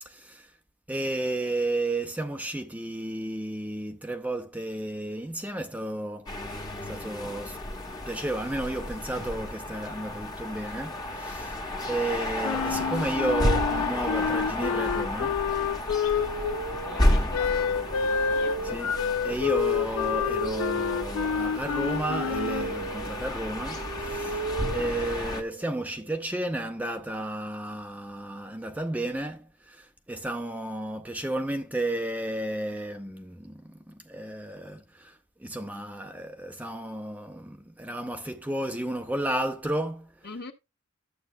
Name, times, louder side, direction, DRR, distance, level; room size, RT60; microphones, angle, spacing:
voice 1, 0.0-0.5 0.9-7.6 8.0-11.6 11.9-15.4 17.1-17.3 18.7-18.9 19.2-24.5 24.7-40.3, right 1 dB, 5° right, 0.6 m, -33 dB
sound 1, 6.3-25.4, left 1 dB, 20° left, 1.1 m, -32 dB
Wind instrument woodwind instrument, 12.4-16.6 17.3-22.7, left 7 dB, 75° left, 0.4 m, -28 dB
sound 2, 16.2-25.9, right 4 dB, 60° right, 0.5 m, -37 dB
voice 2, 16.9-18.6 40.2-40.5, left 3 dB, 50° left, 1.5 m, -43 dB
11.5 x 7.8 x 2.2 m
head